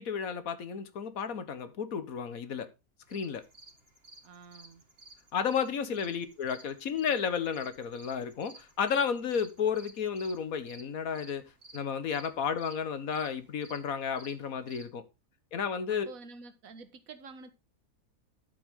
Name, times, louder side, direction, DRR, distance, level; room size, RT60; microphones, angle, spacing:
voice 1, 0.0-2.7 3.1-3.4 5.3-15.0 15.5-16.1, left 7 dB, 65° left, 1.6 m, -32 dB
sound 1, 3.0-14.9, right 2 dB, 40° right, 2.6 m, -55 dB
voice 2, 4.2-4.9 5.9-6.1 15.9-17.5, right 4 dB, 65° right, 1.7 m, -49 dB
11.5 x 7.8 x 3.7 m
omnidirectional pair, 1.6 m